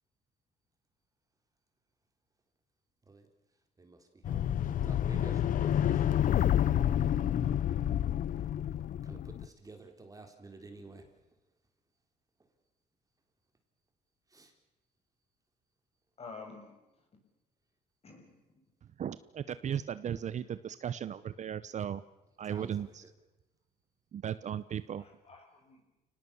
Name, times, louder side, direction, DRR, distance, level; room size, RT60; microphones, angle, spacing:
voice 1, 3.8-7.8 8.3-8.4 9.0-11.1 14.3-14.5 22.4-23.1, right 3 dB, 20° right, 5 dB, 3.8 m, -52 dB
sound 1, 4.2-9.5, left 10 dB, 55° left, 0.9 m, -29 dB
voice 2, 16.2-16.7 18.0-18.3 25.0-25.8, left 4 dB, 35° left, 3 dB, 7.2 m, -49 dB
voice 3, 19.0-22.0 22.4-23.0 24.1-25.0, right 9 dB, 45° right, 15 dB, 0.8 m, -36 dB
30.0 x 19.0 x 7.1 m, 0.98 s
cardioid pair, 110°, 17 cm